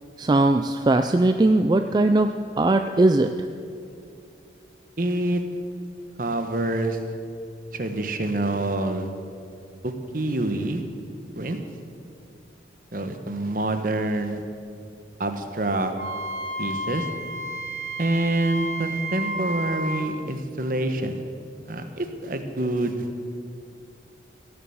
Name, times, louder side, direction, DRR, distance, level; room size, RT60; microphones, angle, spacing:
voice 1, 0.2-2.3 2.6-3.3, right 2 dB, 25° right, 7 dB, 0.3 m, -19 dB
voice 2, 5.0-5.4 6.2-7.0 7.7-9.1 9.8-10.8 11.3-11.6 12.9-14.4 15.2-15.9 16.6-17.1 18.0-21.1 21.7-23.1, right 2 dB, 50° right, 7 dB, 1.0 m, -26 dB
Wind instrument woodwind instrument, 16.0-20.1, right 1 dB, 80° right, 1.2 m, -31 dB
16.5 x 7.0 x 7.9 m, 2.4 s
head